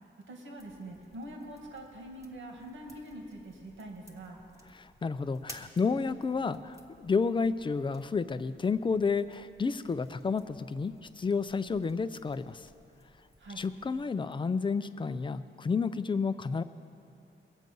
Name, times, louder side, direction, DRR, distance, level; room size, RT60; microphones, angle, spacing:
voice 1, 0.0-4.4 13.4-13.6, right 1 dB, 75° right, 1 dB, 2.0 m, -44 dB
sound 1, 0.6-14.1, equal, 15° right, 1.1 m, -57 dB
voice 2, 4.7-12.7 13.6-16.6, left 5 dB, 25° left, 13 dB, 0.4 m, -31 dB
22.0 x 7.7 x 5.4 m, 2.4 s
wide cardioid pair, 145°, 20 cm